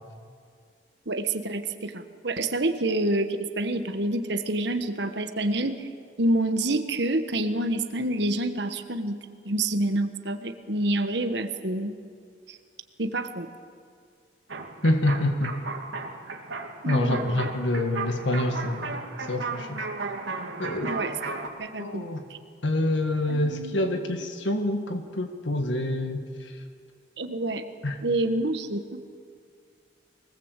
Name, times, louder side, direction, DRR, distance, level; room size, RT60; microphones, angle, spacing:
voice 1, 1.1-5.9 6.2-9.2 9.4-12.0 12.5-12.6 13.0-13.5 16.8-17.5 20.8-21.1 21.6-22.0 22.3-22.4 23.3-24.0 27.2-27.6 28.0-29.0, right 1 dB, 65° right, 8 dB, 1.4 m, -27 dB
sound 1, 14.5-21.5, right 4 dB, 85° right, 2.5 m, -35 dB
voice 2, 14.8-15.5 16.9-18.9 19.3-19.8 20.6-21.0 21.8-22.2 22.6-26.2 27.8-28.0, left 1 dB, 80° left, 6 dB, 1.7 m, -26 dB
24.0 x 19.0 x 8.3 m, 2.1 s
head